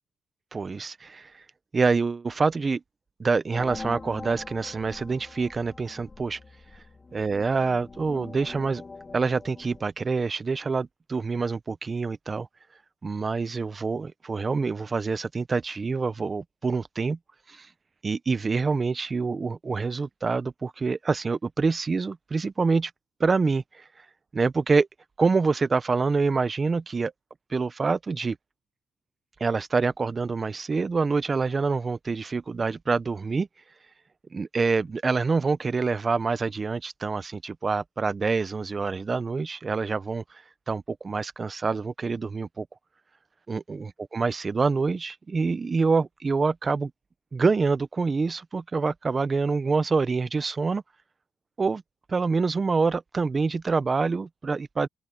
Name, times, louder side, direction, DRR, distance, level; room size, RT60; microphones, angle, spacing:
voice 1, 0.5-1.3 1.7-2.8 3.2-6.4 7.1-8.8 9.1-12.5 13.0-17.2 17.5-17.7 18.0-22.9 23.2-23.8 24.3-24.9 25.2-27.1 27.5-28.4 29.4-33.5 34.3-40.2 40.7-42.7 43.5-46.9 47.3-50.8 51.6-51.8 52.1-54.9, right 4 dB, 30° right, 0.9 m, -26 dB
sound 1, 3.5-9.8, left 3 dB, 30° left, 3.0 m, -43 dB
open air
cardioid pair, 90°, 0 cm